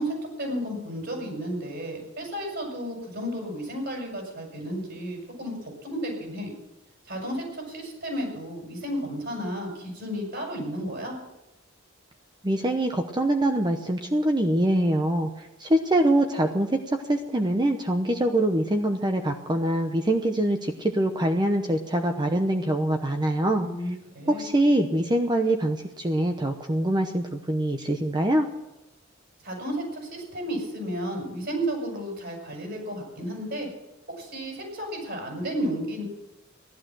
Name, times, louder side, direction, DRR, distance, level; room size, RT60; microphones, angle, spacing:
voice 1, 0.0-5.5 5.8-6.5 7.1-11.1 23.6-24.4 29.4-33.7 34.1-36.0, equal, 55° right, 1 dB, 7.1 m, -32 dB
voice 2, 12.4-23.7 24.3-28.5, right 1 dB, 20° right, 5 dB, 0.9 m, -24 dB
15.5 x 12.0 x 6.2 m, 0.96 s
head